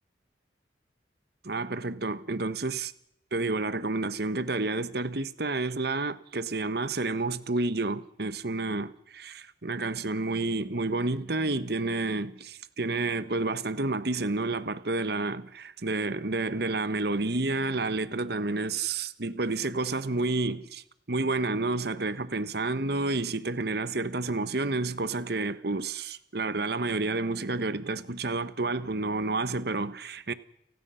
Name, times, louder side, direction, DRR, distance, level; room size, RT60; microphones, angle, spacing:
voice 1, 1.4-2.9 3.3-30.3, right 3 dB, 60° right, 1.2 m, -30 dB
30.0 x 17.5 x 5.7 m
head